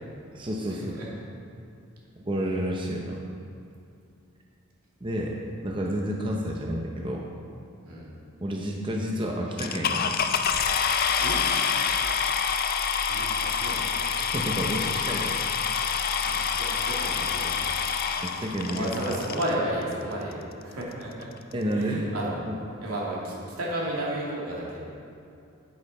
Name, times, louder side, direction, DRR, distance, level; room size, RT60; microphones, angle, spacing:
voice 1, 0.3-0.9 2.2-3.2 5.0-5.4 5.6-7.3 8.4-10.2 14.3-15.4 18.2-18.9 21.5-22.1 22.4-22.6, equal, 20° right, -1 dB, 0.7 m, -30 dB
sound 1, 9.6-19.5 20.3-20.4 20.9-21.0 21.2-21.5, left 6 dB, 40° left, 0.5 m, -27 dB
voice 2, 13.1-13.9 16.2-17.7 18.6-21.3 21.7-22.4 22.8-24.8, right 1 dB, 85° right, -5 dB, 2.7 m, -32 dB
10.0 x 8.5 x 4.3 m, 2.6 s
head